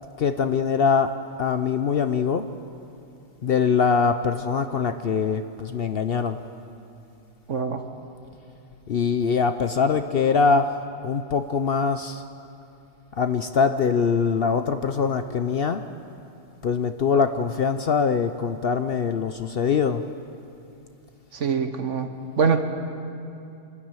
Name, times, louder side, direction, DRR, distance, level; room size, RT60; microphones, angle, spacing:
voice 1, 0.2-1.1 1.4-2.4 3.4-6.4 8.9-10.7 11.0-12.2 13.2-15.8 16.6-20.0, left 5 dB, 55° left, 9 dB, 0.7 m, -23 dB
voice 2, 7.5-7.8 21.3-22.1 22.4-22.6, right 6 dB, 60° right, 7 dB, 1.5 m, -23 dB
26.5 x 13.0 x 8.9 m, 2.6 s
omnidirectional pair, 1.4 m